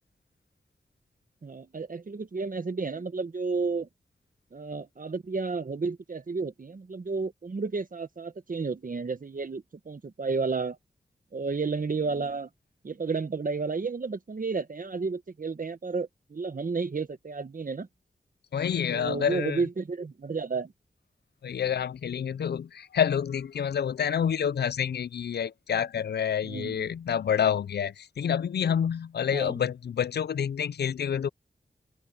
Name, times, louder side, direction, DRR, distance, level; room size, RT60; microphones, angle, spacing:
voice 1, 1.4-3.9 4.5-10.8 11.3-12.5 12.8-17.9 18.9-20.7 26.4-26.9 29.3-29.5, right 4 dB, 55° right, 1.5 m, -32 dB
voice 2, 18.5-19.6 21.4-31.3, left 8 dB, 85° left, 0.5 m, -28 dB
wide cardioid pair, 70°, 17 cm